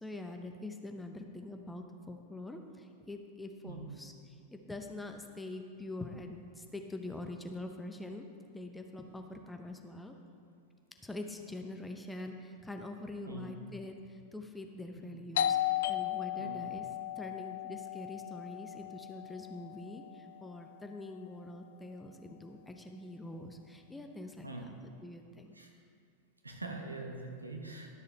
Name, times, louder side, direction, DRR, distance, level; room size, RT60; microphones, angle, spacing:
voice 1, 0.0-8.2 8.5-10.1 11.0-16.9 17.2-24.7 25.0-25.6, left 2 dB, 5° left, 4 dB, 0.7 m, -44 dB
Doorbell, 15.4-20.7, left 11 dB, 60° left, 0.3 m, -36 dB
voice 2, 26.4-27.9, right 2 dB, 80° right, 2 dB, 1.1 m, -43 dB
12.0 x 6.5 x 4.2 m, 2.4 s
figure-of-eight pair, 90°, 0 cm